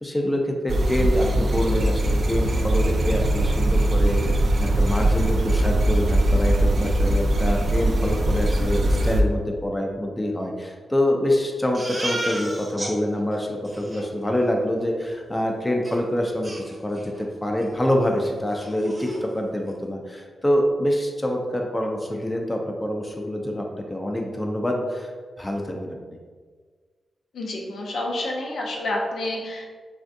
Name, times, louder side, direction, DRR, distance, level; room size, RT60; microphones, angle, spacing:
voice 1, 0.0-25.1 25.4-26.2, left 1 dB, 15° left, 1 dB, 0.4 m, -26 dB
sound 1, 0.7-9.2, right 1 dB, 60° right, 0.3 m, -21 dB
Crying sobbing, 11.7-12.9 13.3-13.4 13.6-14.0 15.8-15.9 16.4-17.2 17.6-17.7 18.1-18.2 18.5-19.2, right 1 dB, 30° right, 0.8 m, -33 dB
voice 2, 27.3-29.7, left 1 dB, 80° left, -1 dB, 0.5 m, -29 dB
3.4 x 2.4 x 2.5 m, 1.5 s
cardioid pair, 65°, 0 cm